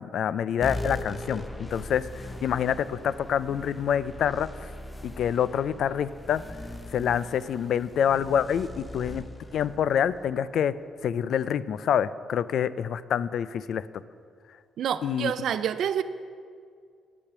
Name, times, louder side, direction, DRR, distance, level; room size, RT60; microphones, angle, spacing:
voice 1, 0.0-4.7 5.0-6.4 6.9-9.3 9.5-13.9 15.0-15.3, left 8 dB, 65° left, 17 dB, 0.3 m, -27 dB
sound 1, 0.6-11.5, left 1 dB, 15° left, 0.8 m, -40 dB
voice 2, 14.8-16.0, right 9 dB, 70° right, 12 dB, 0.3 m, -28 dB
8.7 x 8.3 x 6.0 m, 2.2 s
cardioid pair, 90°, 0 cm